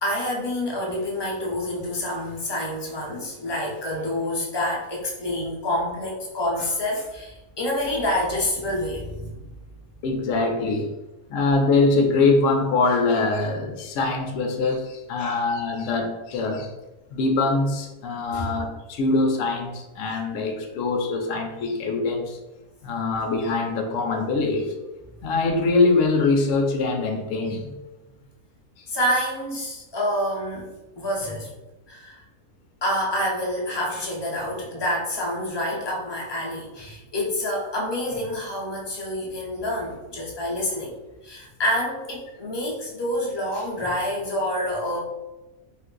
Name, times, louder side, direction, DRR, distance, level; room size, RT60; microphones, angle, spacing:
voice 1, 0.0-9.4 15.2-15.4 18.3-18.6 28.9-31.5 31.9-32.2 32.8-40.9 41.2-45.0, left 1 dB, 40° left, -3 dB, 0.3 m, -27 dB
voice 2, 10.0-10.9 11.3-16.7 17.1-22.4 22.8-24.7 25.2-27.7 28.8-28.9, left 3 dB, 70° left, 4 dB, 0.8 m, -23 dB
2.6 x 2.5 x 3.7 m, 1.1 s
omnidirectional pair, 1.5 m